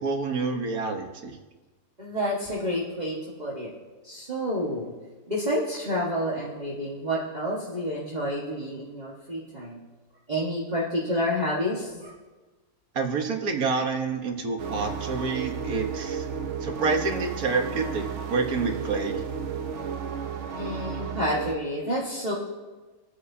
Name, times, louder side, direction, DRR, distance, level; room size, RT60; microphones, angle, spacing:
voice 1, 0.0-1.3 12.9-16.2 16.6-19.2, right 4 dB, 75° right, 4 dB, 1.8 m, -28 dB
voice 2, 2.0-3.7 4.0-4.9 5.3-9.8 10.3-12.1 20.5-22.3, equal, 30° right, -6 dB, 1.7 m, -29 dB
sound 1, 14.6-21.6, right 6 dB, 60° right, 1.1 m, -33 dB
27.5 x 9.8 x 2.8 m, 1.2 s
omnidirectional pair, 1.6 m